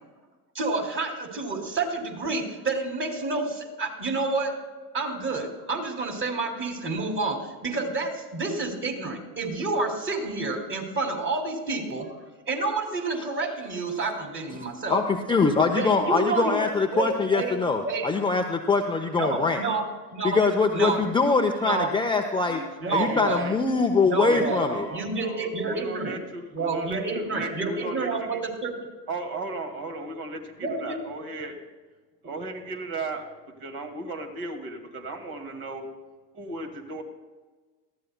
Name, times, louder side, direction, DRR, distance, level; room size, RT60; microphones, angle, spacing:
voice 1, 0.5-4.6 4.9-12.1 12.5-15.0 15.7-17.6 17.8-18.1 19.1-20.4 20.7-21.0 21.6-22.0 22.8-23.5 24.1-24.7 24.9-26.2 26.5-28.8 30.6-31.0, right 3 dB, 25° right, 3 dB, 2.6 m, -29 dB
voice 2, 14.9-19.6 20.2-22.6 22.9-24.9, left 4 dB, 10° left, 3 dB, 0.7 m, -23 dB
voice 3, 22.5-23.6 24.3-28.4 29.1-31.6 32.2-33.2 33.6-35.9 36.3-37.0, right 2 dB, 45° right, 4 dB, 2.2 m, -36 dB
19.0 x 14.0 x 2.2 m, 1.3 s
hypercardioid pair, 80°, 48 cm